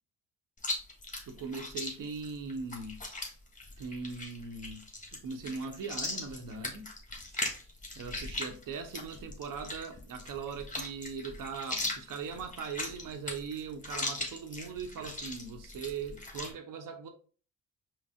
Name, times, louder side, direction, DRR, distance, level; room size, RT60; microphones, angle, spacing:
Chewing mastication, 0.6-16.5, left 2 dB, 20° left, 1.3 m, -39 dB
voice 1, 1.3-3.0 3.8-4.8 5.1-6.9 7.9-17.1, right 5 dB, 60° right, 0.8 m, -40 dB
4.9 x 2.0 x 3.4 m
supercardioid pair, 55°, 36 cm